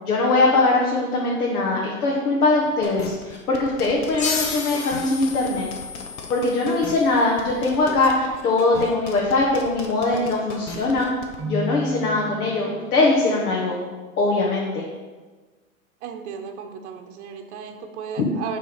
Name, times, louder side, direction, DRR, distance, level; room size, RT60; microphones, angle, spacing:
voice 1, 0.0-5.7 6.3-11.1 11.4-13.8 14.2-14.8 18.2-18.3, left 3 dB, 85° left, -3 dB, 1.4 m, -21 dB
sound 1, 2.8-11.4, left 4 dB, 35° left, 0.9 m, -38 dB
sound 2, 4.2-7.4, left 5 dB, 15° left, 0.5 m, -32 dB
Keyboard (musical), 11.4-13.2, equal, 25° right, 0.8 m, -33 dB
voice 2, 16.0-18.6, right 7 dB, 50° right, 4 dB, 1.0 m, -35 dB
6.7 x 3.7 x 5.9 m, 1.3 s
hypercardioid pair, 140°, 43 cm